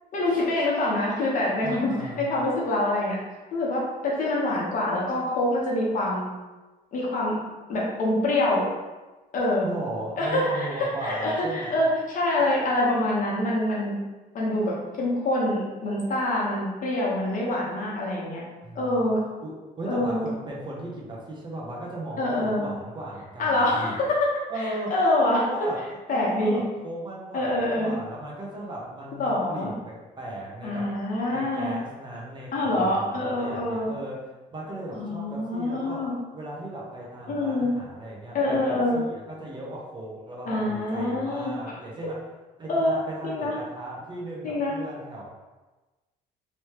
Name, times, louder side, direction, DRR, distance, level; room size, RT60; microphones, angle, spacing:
voice 1, 0.1-3.2 3.5-6.3 6.9-7.4 7.7-8.7 9.3-9.7 10.2-14.0 14.3-18.4 18.7-19.2 19.9-20.3 22.2-22.7 23.4-25.4 26.1-26.6 27.3-27.9 29.2-29.7 30.6-31.7 32.5-33.9 35.0-36.2 37.3-37.7 38.3-39.0 40.5-41.5 42.7-42.9 43.2-43.5 44.4-44.7, left 1 dB, 50° left, -5 dB, 1.2 m, -25 dB
voice 2, 1.6-2.4 9.6-11.8 18.6-19.1 19.4-23.9 24.5-25.8 26.1-31.0 31.2-36.1 36.3-42.2 42.6-45.3, right 1 dB, 25° right, -4 dB, 0.8 m, -37 dB
3.2 x 3.0 x 2.9 m, 1.2 s
cardioid pair, 110°, 17 cm